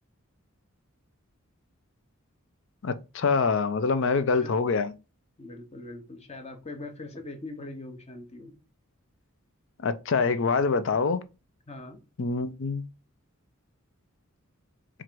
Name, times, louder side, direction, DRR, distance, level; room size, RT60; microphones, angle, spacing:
voice 1, 2.8-4.9 9.8-11.2 12.2-12.8, left 4 dB, 60° left, 0.5 m, -25 dB
voice 2, 3.9-4.5 5.4-8.5 11.7-12.0, left 2 dB, 30° left, 0.8 m, -42 dB
4.5 x 2.5 x 4.5 m
head